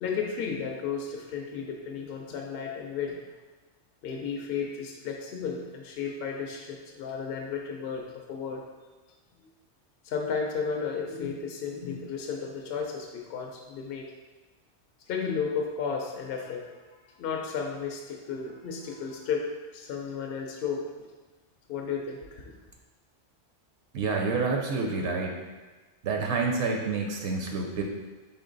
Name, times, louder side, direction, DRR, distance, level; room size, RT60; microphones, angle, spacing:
voice 1, 0.0-3.2 4.0-8.6 10.0-14.1 15.1-16.6 17.2-19.5 19.7-21.1 21.7-22.5, left 6 dB, 65° left, 1 dB, 0.7 m, -33 dB
voice 2, 23.9-25.4 26.0-27.8, right 4 dB, 75° right, 1 dB, 0.8 m, -28 dB
4.3 x 3.0 x 3.9 m, 1.2 s
omnidirectional pair, 1.2 m